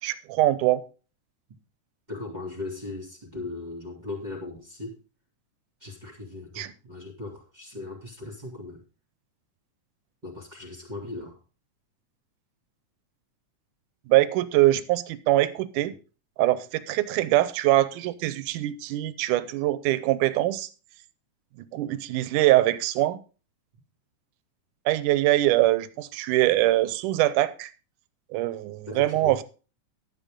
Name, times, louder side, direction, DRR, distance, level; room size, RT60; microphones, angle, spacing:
voice 1, 0.0-0.8 6.6-6.7 14.1-15.9 16.4-20.7 21.6-23.2 24.9-27.7 28.3-29.4, right 16 dB, 85° right, 14 dB, 2.2 m, -23 dB
voice 2, 2.1-5.0 5.8-8.8 10.2-11.4 28.9-29.4, left 2 dB, 15° right, -3 dB, 2.2 m, -38 dB
12.0 x 9.1 x 3.6 m, 0.34 s
omnidirectional pair, 3.6 m